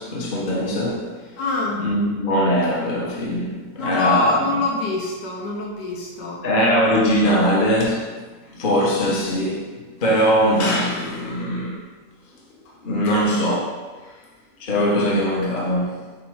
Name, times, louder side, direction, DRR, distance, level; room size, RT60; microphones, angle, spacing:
voice 1, 0.0-1.2 1.8-4.5 6.4-8.1 8.5-9.7 10.0-11.9 12.8-13.8 14.6-16.1, equal, 35° left, -4 dB, 1.1 m, -21 dB
voice 2, 1.4-1.8 3.8-6.4, left 3 dB, 75° left, -2 dB, 1.7 m, -24 dB
7.6 x 2.8 x 4.7 m, 1.3 s
omnidirectional pair, 1.9 m